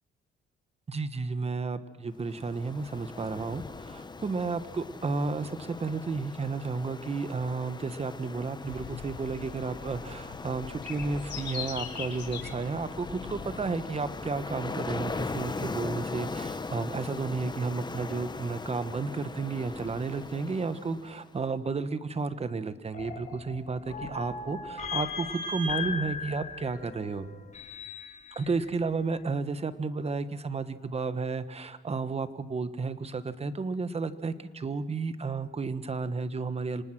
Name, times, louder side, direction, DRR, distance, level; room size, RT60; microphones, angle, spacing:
voice 1, 0.9-27.3 28.3-36.8, right 4 dB, 30° right, 12 dB, 1.4 m, -32 dB
Ocean, 2.2-21.3, left 3 dB, 20° left, 1.1 m, -40 dB
sound 1, 8.6-14.5, left 5 dB, 60° left, 4.4 m, -41 dB
sound 2, 22.9-28.5, left 4 dB, 35° left, 4.1 m, -37 dB
26.0 x 19.5 x 6.2 m, 1.3 s
cardioid pair, 90°, 20 cm